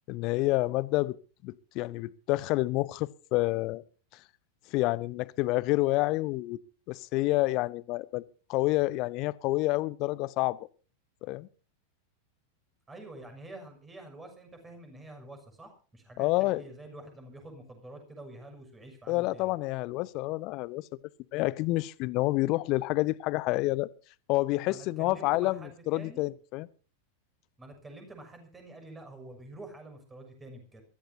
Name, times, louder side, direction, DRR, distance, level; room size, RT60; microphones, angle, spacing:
voice 1, 0.1-1.2 1.4-3.8 4.7-6.6 6.9-8.2 8.5-10.7 11.2-11.5 16.2-16.6 19.1-20.9 21.3-23.9 24.3-26.7, left 20 dB, 40° left, 0.8 m, -28 dB
voice 2, 12.9-19.5 24.7-26.3 27.6-30.8, right 2 dB, 15° right, 6.5 m, -47 dB
24.0 x 15.5 x 2.8 m
figure-of-eight pair, 90°, 0 cm